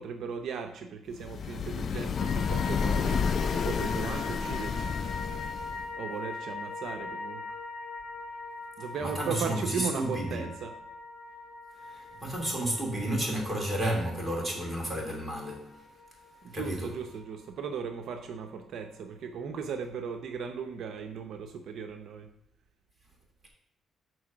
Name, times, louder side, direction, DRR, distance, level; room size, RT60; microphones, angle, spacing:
voice 1, 0.0-3.2 3.5-5.0 6.0-7.5 8.8-10.7 16.4-22.3, right 6 dB, 70° right, 0.6 m, -37 dB
sound 1, 1.2-5.9, left 6 dB, 55° left, 0.3 m, -30 dB
sound 2, 2.2-18.5 18.8-18.9, left 3 dB, 85° left, 0.9 m, -41 dB
voice 2, 9.0-10.5 11.9-15.8 16.5-16.9, right 1 dB, 10° right, 2.8 m, -32 dB
6.3 x 4.6 x 5.9 m
cardioid pair, 90°, 0 cm